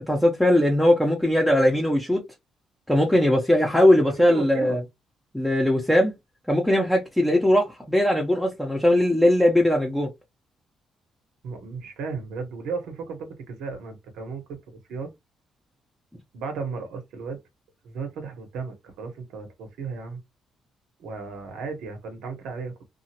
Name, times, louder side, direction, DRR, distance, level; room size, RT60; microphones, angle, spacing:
voice 1, 0.1-2.2 2.9-4.8 5.3-6.1 6.5-10.1, left 1 dB, 5° left, 0.8 m, -20 dB
voice 2, 4.1-4.8 11.4-15.1 16.3-17.4 17.8-20.2 21.0-22.7, right 4 dB, 90° right, 1.2 m, -35 dB
2.8 x 2.5 x 2.8 m
cardioid pair, 90°, 0 cm